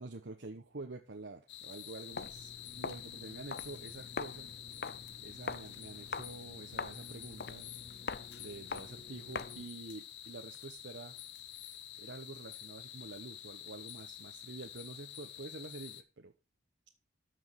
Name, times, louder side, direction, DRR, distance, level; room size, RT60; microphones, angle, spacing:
voice 1, 0.0-4.5 4.9-7.7 8.4-11.1 12.0-16.3, right 3 dB, 85° right, 4 dB, 1.1 m, -48 dB
sound 1, 1.5-16.0, left 11 dB, 80° left, 1.0 m, -49 dB
Walk footsteps, 2.1-9.7, left 4 dB, 55° left, 0.5 m, -44 dB
13.0 x 6.4 x 4.7 m, 0.28 s
head